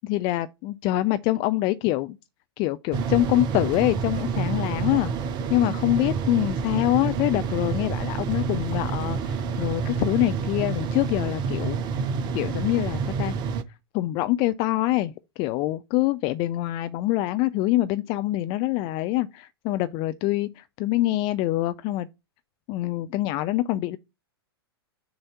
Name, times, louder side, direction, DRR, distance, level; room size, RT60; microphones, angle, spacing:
voice 1, 0.0-2.2 2.6-5.1 5.5-11.8 12.3-13.4 13.9-15.1 15.4-22.1 22.7-24.0, left 16 dB, 35° left, 0.4 m, -25 dB
sound 1, 2.9-13.6, right 5 dB, 30° right, 0.7 m, -28 dB
6.5 x 2.7 x 5.7 m
figure-of-eight pair, 105°, 14 cm